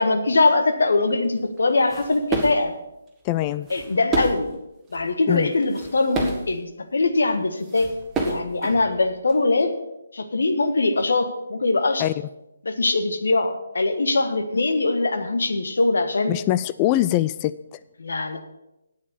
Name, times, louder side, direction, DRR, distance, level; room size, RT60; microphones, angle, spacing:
voice 1, 0.0-2.7 3.7-4.5 4.9-7.9 8.2-9.8 10.1-12.0 12.6-16.3 18.0-18.4, left 3 dB, 65° left, 8 dB, 1.5 m, -22 dB
sound 1, 1.6-2.7 3.4-4.5 4.9-5.1 5.5-6.6 7.4-7.5 7.6-9.3, right 3 dB, 10° right, 1.7 m, -29 dB
voice 2, 3.2-3.7 5.3-5.5 12.0-12.1 16.3-17.8, left 14 dB, 25° left, 15 dB, 0.3 m, -23 dB
9.0 x 8.4 x 7.1 m, 0.89 s
figure-of-eight pair, 145°, 0 cm